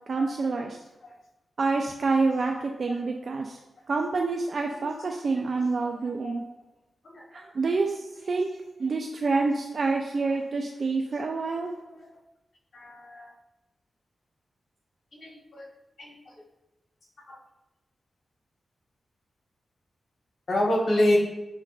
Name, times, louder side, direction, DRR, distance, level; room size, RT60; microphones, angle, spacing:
voice 1, 0.1-0.8 1.6-3.6 3.9-6.4 7.3-8.5 8.8-11.7, right 3 dB, 60° right, 2 dB, 0.3 m, -27 dB
voice 2, 12.7-13.3 15.1-15.7 16.0-16.1 17.3-17.4 20.5-21.2, left 1 dB, 65° left, -3 dB, 1.3 m, -26 dB
6.4 x 3.1 x 2.5 m, 0.96 s
cardioid pair, 65°, 0 cm